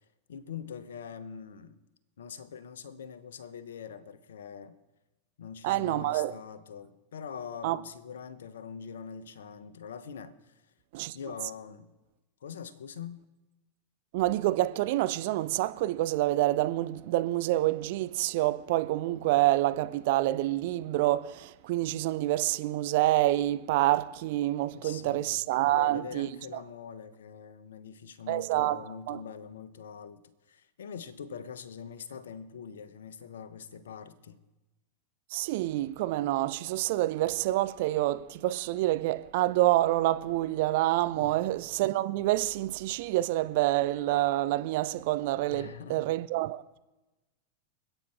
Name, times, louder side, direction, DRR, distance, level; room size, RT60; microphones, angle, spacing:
voice 1, 0.0-1.8 2.2-4.7 5.4-10.6 11.1-11.9 12.4-13.2 24.7-30.2 30.5-34.4 41.2-41.4 45.5-46.1, left 7 dB, 65° left, 1.2 m, -43 dB
voice 2, 5.6-6.3 7.6-7.8 10.9-11.2 14.1-26.3 28.3-28.8 29.1-29.2 35.3-46.6, right 16 dB, 50° right, 0.6 m, -27 dB
27.0 x 9.1 x 3.7 m
figure-of-eight pair, 90°, 0 cm